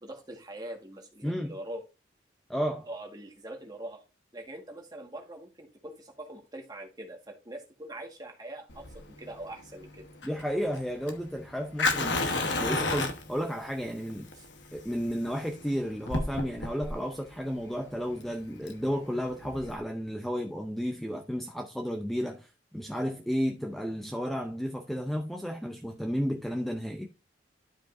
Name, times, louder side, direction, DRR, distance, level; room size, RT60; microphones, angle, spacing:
voice 1, 0.0-1.8 2.9-4.0 4.3-10.1 14.4-14.5, right 1 dB, 20° right, 1.6 m, -43 dB
voice 2, 1.2-1.5 2.5-2.9 10.2-14.3 14.7-27.1, equal, ahead, 0.5 m, -32 dB
Fire, 8.7-19.8, left 3 dB, 70° left, 1.1 m, -33 dB
11.5 x 5.0 x 2.6 m
head